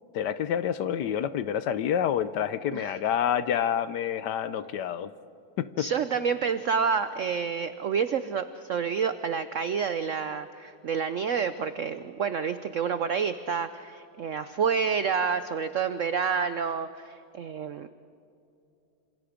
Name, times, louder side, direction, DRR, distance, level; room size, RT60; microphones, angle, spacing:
voice 1, 0.1-5.1 5.6-5.9, left 9 dB, 70° left, 14 dB, 1.2 m, -28 dB
voice 2, 5.8-17.9, right 6 dB, 80° right, 11 dB, 0.7 m, -29 dB
27.0 x 27.0 x 5.1 m, 2.6 s
omnidirectional pair, 2.1 m